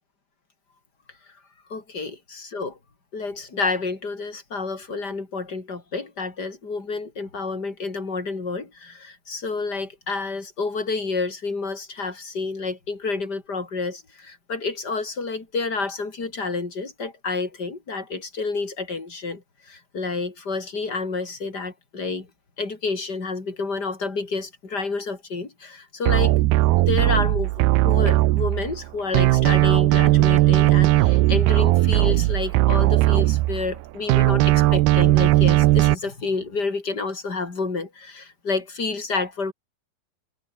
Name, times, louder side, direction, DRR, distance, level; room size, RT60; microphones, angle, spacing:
voice 1, 1.7-2.8 3.1-22.3 22.6-26.4 26.8-27.5 27.8-39.5, left 4 dB, 20° left, 4.3 m, -29 dB
sound 1, 26.1-28.8 29.1-33.8 34.1-35.9, right 18 dB, 75° right, 2.5 m, -18 dB
omnidirectional pair, 5.2 m